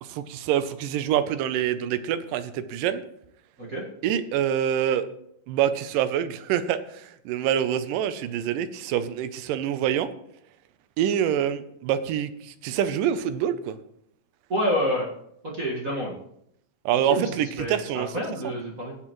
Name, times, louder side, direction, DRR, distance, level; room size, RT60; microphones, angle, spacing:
voice 1, 0.0-3.0 4.0-5.1 5.5-10.1 11.0-13.8 16.9-18.1, right 10 dB, 80° right, 12 dB, 2.3 m, -26 dB
voice 2, 14.5-15.1 15.4-16.1 17.1-17.3 17.6-19.0, equal, 35° right, -3 dB, 1.4 m, -28 dB
20.5 x 7.8 x 3.1 m, 0.75 s
omnidirectional pair, 3.9 m